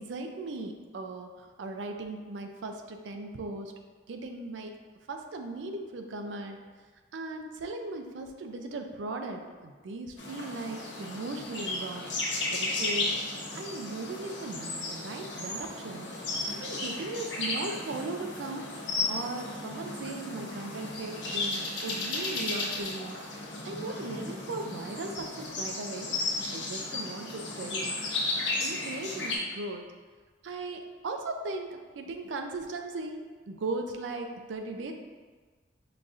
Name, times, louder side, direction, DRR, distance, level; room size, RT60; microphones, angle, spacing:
voice 1, 0.0-3.7 4.1-4.8 5.1-6.6 7.1-12.1 12.5-13.2 13.5-16.1 16.5-18.6 19.1-23.4 23.6-26.1 26.5-28.0 28.6-29.9 30.4-34.9, right 2 dB, 90° right, 5 dB, 0.4 m, -38 dB
sound 1, 10.2-29.4, left 2 dB, 80° left, 0.9 m, -34 dB
5.7 x 2.4 x 2.5 m, 1.4 s
head